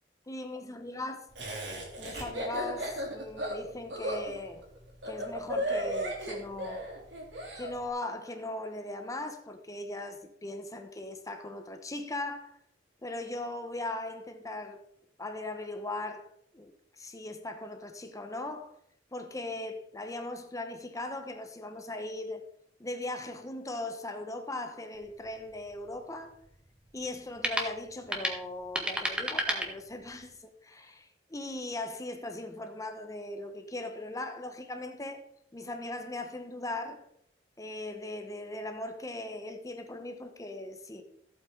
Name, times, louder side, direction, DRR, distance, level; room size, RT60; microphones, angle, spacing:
voice 1, 0.3-1.3 2.0-4.6 5.0-6.8 7.5-12.6 13.0-14.8 15.2-18.7 19.1-22.4 22.8-26.4 26.9-35.2 35.5-37.1 37.6-41.0, left 2 dB, 20° left, 1.1 m, -39 dB
Laughter, 1.4-7.7, right 1 dB, 75° right, 3.2 m, -35 dB
sound 1, 24.9-30.3, equal, 5° right, 1.6 m, -35 dB
15.0 x 8.4 x 3.9 m
head